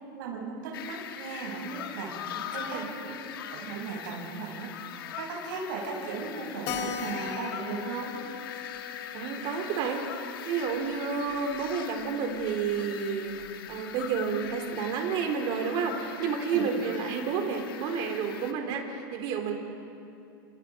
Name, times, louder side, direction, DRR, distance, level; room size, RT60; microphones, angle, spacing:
voice 1, 0.1-2.1 2.5-3.1 3.5-4.7 5.2-8.1 16.5-16.7, right 4 dB, 60° right, -1 dB, 7.7 m, -36 dB
sound 1, 0.7-18.5, left 9 dB, 80° left, 1.9 m, -41 dB
voice 2, 2.3-2.9 9.1-10.0 10.4-13.3 13.7-19.5, right 6 dB, 40° right, 3 dB, 3.6 m, -30 dB
Keyboard (musical), 6.7-11.7 12.0-12.1 12.4-12.5 12.7-12.8 13.4-13.7, left 8 dB, 40° left, 1.9 m, -40 dB
30.0 x 28.0 x 5.2 m, 2.6 s
supercardioid pair, 160°, 12 cm